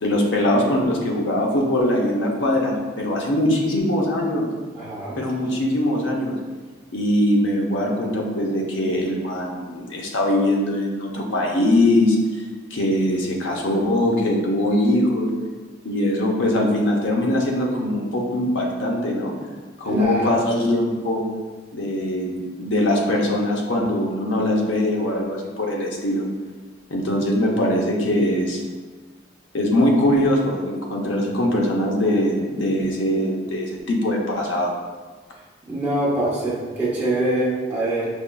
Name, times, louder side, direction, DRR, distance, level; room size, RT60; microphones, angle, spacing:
voice 1, 0.0-4.5 5.2-6.4 6.9-12.5 12.7-15.3 15.8-19.3 19.8-21.2 21.7-26.3 26.9-28.6 29.5-34.7, left 1 dB, 85° left, -1 dB, 0.7 m, -21 dB
voice 2, 4.7-5.2 19.9-20.3 35.7-38.1, right 1 dB, 10° right, -9 dB, 0.8 m, -24 dB
5.2 x 3.0 x 2.3 m, 1.4 s
head